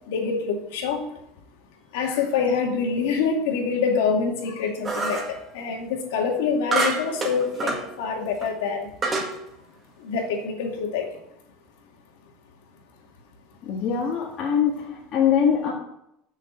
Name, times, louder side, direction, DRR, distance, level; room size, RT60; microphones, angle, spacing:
voice 1, 0.1-1.0 1.9-8.9 10.0-11.1, left 5 dB, 85° left, 1 dB, 2.3 m, -26 dB
sound 1, 4.8-5.4 6.7-7.9 8.4-8.5 9.0-9.3, right 3 dB, 20° right, 1.9 m, -26 dB
voice 2, 13.6-15.7, left 8 dB, 45° left, -4 dB, 2.0 m, -23 dB
7.2 x 6.5 x 7.8 m, 0.79 s
supercardioid pair, 135°, 0 cm